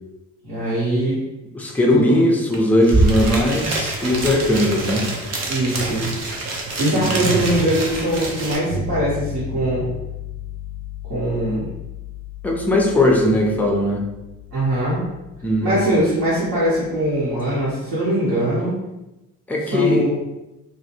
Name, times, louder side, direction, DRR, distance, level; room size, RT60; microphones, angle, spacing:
voice 1, 0.4-1.2 1.9-2.3 5.5-6.3 6.8-9.8 11.1-11.7 14.5-15.0 15.6-18.7 19.7-20.1, right 1 dB, 60° right, -10 dB, 1.0 m, -21 dB
voice 2, 1.5-5.1 6.9-7.2 12.4-14.1 15.4-15.7 19.5-20.0, left 1 dB, 5° left, 0 dB, 0.4 m, -19 dB
sound 1, 2.5-2.6 2.8-8.6, right 2 dB, 35° right, 0.6 m, -24 dB
sound 2, 8.7-17.7, left 6 dB, 85° right, 0.6 m, -35 dB
2.2 x 2.1 x 2.8 m, 0.99 s
figure-of-eight pair, 40°, 45 cm